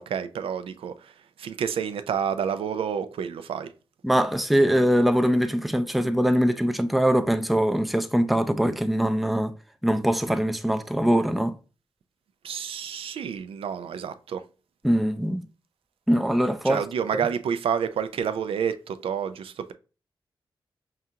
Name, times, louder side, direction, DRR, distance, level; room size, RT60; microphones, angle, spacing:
voice 1, 0.0-3.7 12.4-14.4 16.6-19.7, right 7 dB, 80° right, 0.3 m, -29 dB
voice 2, 4.0-9.5 9.8-11.6 14.8-15.4 16.1-16.8, equal, ahead, 0.4 m, -22 dB
5.5 x 2.4 x 2.7 m
cardioid pair, 85°, 9 cm